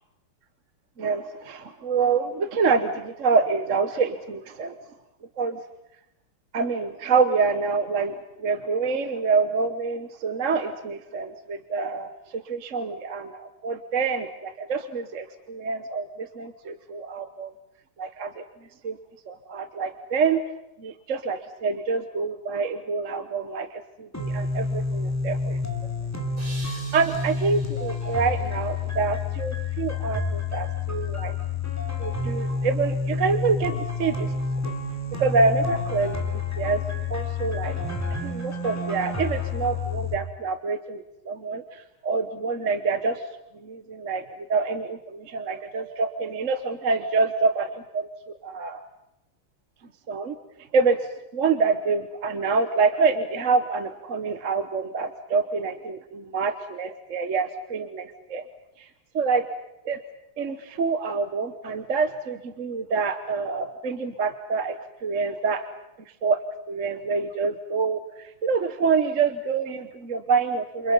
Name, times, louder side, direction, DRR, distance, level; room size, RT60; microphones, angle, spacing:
voice 1, 1.0-4.8 5.4-5.6 6.5-17.5 18.0-18.4 18.8-19.0 19.3-20.4 20.8-23.7 24.0-25.6 26.6-31.3 32.0-34.3 34.6-34.7 35.2-36.2 36.6-36.8 37.1-37.7 38.2-43.2 43.6-44.2 44.5-48.1 48.4-48.8 50.1-50.3 50.7-51.0 51.3-58.5 58.8-58.9 59.1-59.5 59.8-60.0 60.4-65.7 66.2-66.4 66.7-70.9, right 4 dB, 45° right, 9 dB, 1.2 m, -26 dB
sound 1, 24.1-40.1, left 3 dB, 5° left, 2.6 m, -29 dB
sound 2, 26.4-29.5, right 2 dB, 65° right, 6.4 m, -46 dB
28.5 x 28.5 x 5.5 m, 0.88 s
omnidirectional pair, 2.3 m